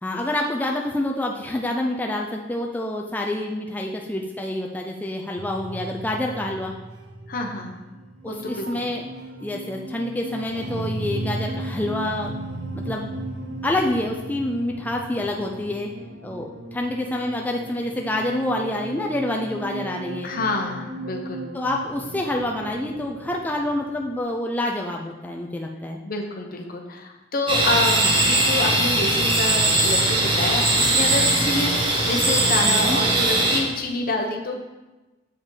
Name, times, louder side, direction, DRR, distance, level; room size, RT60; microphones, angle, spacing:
voice 1, 0.0-6.7 8.2-9.0 9.4-12.3 12.7-13.2 13.6-15.9 16.2-20.3 21.5-26.0 32.6-33.0, left 1 dB, 10° left, 0 dB, 0.4 m, -27 dB
sound 1, 5.4-24.2, right 1 dB, 80° right, 0.9 m, -36 dB
voice 2, 7.3-7.8 8.3-8.7 20.2-21.4 26.0-34.6, left 2 dB, 55° left, 3 dB, 0.9 m, -27 dB
sound 2, 27.5-33.6, right 2 dB, 30° right, 1.1 m, -20 dB
7.3 x 5.0 x 3.9 m, 1.1 s
head